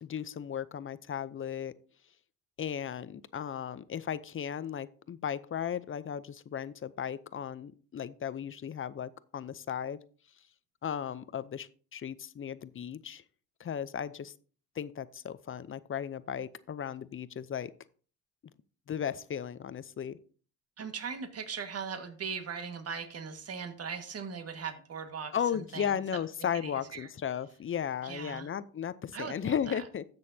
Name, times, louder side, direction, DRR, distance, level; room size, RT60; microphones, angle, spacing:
voice 1, 0.0-1.7 2.6-10.0 10.8-13.2 13.6-14.3 14.8-17.7 18.9-20.2 25.3-30.0, left 8 dB, 35° left, 15 dB, 0.6 m, -35 dB
voice 2, 20.8-26.0 26.6-27.1 28.0-28.5 29.1-29.8, right 6 dB, 45° right, 7 dB, 1.7 m, -39 dB
14.5 x 6.4 x 2.8 m, 0.41 s
supercardioid pair, 75°, 35 cm